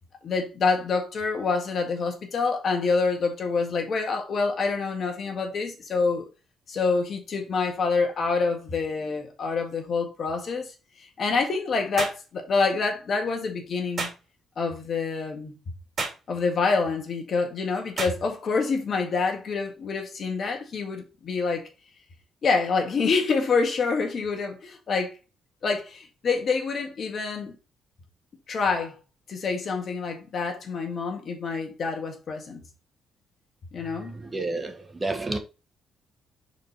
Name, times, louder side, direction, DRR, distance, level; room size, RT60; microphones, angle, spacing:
voice 1, 0.2-6.3 6.7-14.1 14.6-15.6 16.3-21.7 22.4-25.2 25.6-27.5 28.5-29.0 29.3-32.6 33.7-34.1, left 4 dB, 55° left, 1.7 m, -27 dB
sound 1, 12.0-12.2 14.0-14.2 16.0-16.2 18.0-18.2, right 3 dB, 45° right, 2.3 m, -30 dB
voice 2, 34.1-35.4, right 2 dB, 25° right, 1.2 m, -30 dB
5.1 x 4.4 x 4.6 m
cardioid pair, 90°, 0 cm